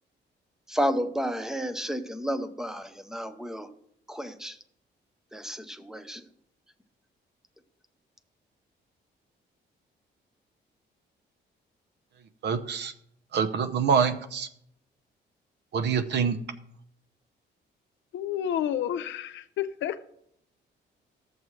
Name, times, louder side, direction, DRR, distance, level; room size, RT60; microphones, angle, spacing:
voice 1, 0.7-3.7 4.1-4.6 5.3-6.2, equal, 5° right, 0.7 m, -31 dB
voice 2, 12.4-12.9 13.3-14.5 15.7-16.4, right 6 dB, 65° right, 0.8 m, -25 dB
voice 3, 18.1-20.0, left 10 dB, 85° left, 0.6 m, -30 dB
13.5 x 7.3 x 3.2 m
cardioid pair, 135°, 19 cm